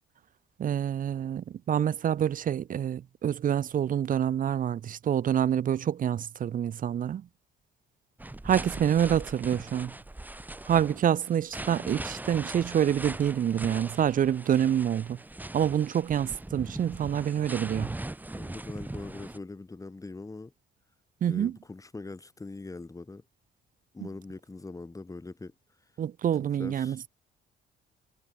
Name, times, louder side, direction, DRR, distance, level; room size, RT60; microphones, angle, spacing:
voice 1, 0.6-7.3 8.4-9.9 10.7-15.2 15.5-17.9 21.2-21.6 26.0-27.0, right 9 dB, 45° right, 0.5 m, -27 dB
sound 1, 8.2-19.4, right 2 dB, 10° right, 0.8 m, -40 dB
voice 2, 18.3-20.5 21.3-23.2 23.9-25.5 26.6-27.1, left 3 dB, 15° left, 1.3 m, -42 dB
cardioid pair, 90°, 20 cm